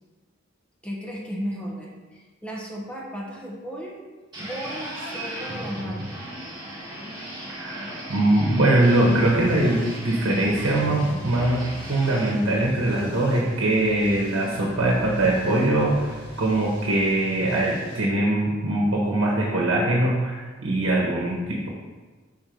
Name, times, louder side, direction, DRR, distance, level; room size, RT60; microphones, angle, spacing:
voice 1, 0.8-3.9 4.5-6.2, equal, 5° left, -4 dB, 1.1 m, -35 dB
sound 1, 4.3-12.3, right 1 dB, 20° right, 2.2 m, -36 dB
voice 2, 7.5-21.7, right 1 dB, 80° right, -3 dB, 1.1 m, -22 dB
sound 2, 8.8-18.0, left 1 dB, 55° left, 1.8 m, -42 dB
5.5 x 4.5 x 5.2 m, 1.4 s
head